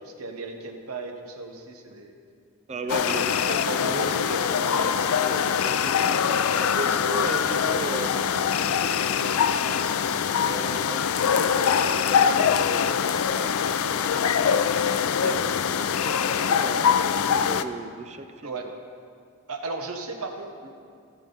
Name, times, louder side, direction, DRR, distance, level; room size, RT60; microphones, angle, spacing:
voice 1, 0.0-2.1 2.9-3.3 3.7-4.5 18.4-18.7 19.5-20.7, right 3 dB, 85° right, 4 dB, 1.1 m, -35 dB
voice 2, 2.7-4.0 4.6-5.0 5.2-9.5 10.5-11.0 11.3-14.1 14.4-14.6 15.2-18.6, right 2 dB, 30° right, 8 dB, 0.4 m, -37 dB
sound 1, 2.9-17.6, left 7 dB, 75° left, 0.4 m, -23 dB
16.5 x 7.4 x 3.9 m, 2.2 s
head